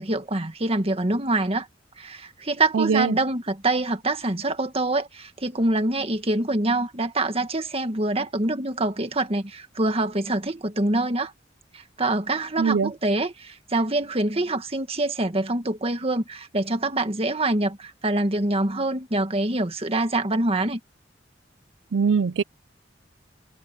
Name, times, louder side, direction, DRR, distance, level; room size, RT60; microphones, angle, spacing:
voice 1, 0.0-1.7 2.0-11.3 11.7-20.8, right 2 dB, 35° right, 1.8 m, -25 dB
voice 2, 2.7-3.2 12.6-12.9 21.9-22.4, right 5 dB, 85° right, 0.4 m, -21 dB
head